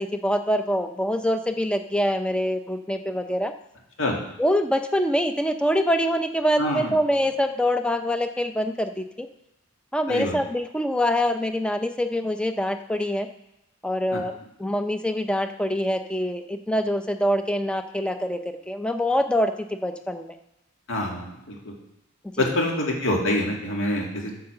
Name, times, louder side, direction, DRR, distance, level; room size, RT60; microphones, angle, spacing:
voice 1, 0.0-3.5 4.4-9.3 9.9-13.3 13.8-14.3 14.6-18.4 18.7-19.5 19.8-20.3 22.4-22.5, equal, 5° left, 7 dB, 0.6 m, -25 dB
voice 2, 6.6-6.9 10.1-10.4 14.1-14.2 20.9-21.7 22.4-24.3, left 1 dB, 60° left, 0 dB, 2.4 m, -26 dB
8.5 x 6.7 x 6.7 m, 0.87 s
head